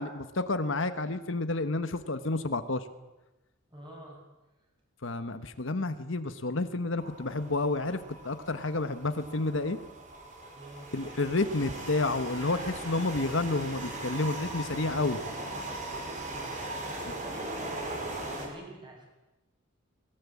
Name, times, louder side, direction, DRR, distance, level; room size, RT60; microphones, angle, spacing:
voice 1, 0.0-2.9 5.0-9.8 10.9-15.2, left 2 dB, 60° left, 10 dB, 1.3 m, -30 dB
voice 2, 3.7-4.2 10.5-10.9 15.9-16.4 16.9-19.1, right 1 dB, 20° right, -1 dB, 7.6 m, -48 dB
sound 1, 7.0-18.5, right 2 dB, 35° right, 5.2 m, -39 dB
22.0 x 19.0 x 8.6 m, 1.0 s
head